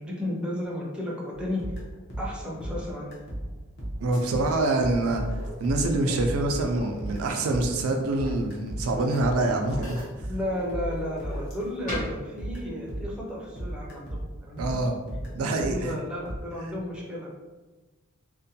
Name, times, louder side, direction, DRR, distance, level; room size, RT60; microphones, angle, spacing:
voice 1, 0.0-1.6 2.2-3.2 10.2-14.6 15.6-17.3, left 1 dB, 5° right, -4 dB, 0.5 m, -33 dB
sound 1, 1.3-13.3 13.6-16.4, right 1 dB, 55° left, 0.7 m, -36 dB
voice 2, 4.0-5.2 5.6-10.1 14.6-14.9 15.3-16.0, right 2 dB, 80° right, 4 dB, 0.4 m, -25 dB
sound 2, 4.1-11.8, equal, 80° left, 0.9 m, -44 dB
sound 3, 6.1-15.2, left 1 dB, 40° left, 1.0 m, -45 dB
2.5 x 2.2 x 2.6 m, 1.2 s
head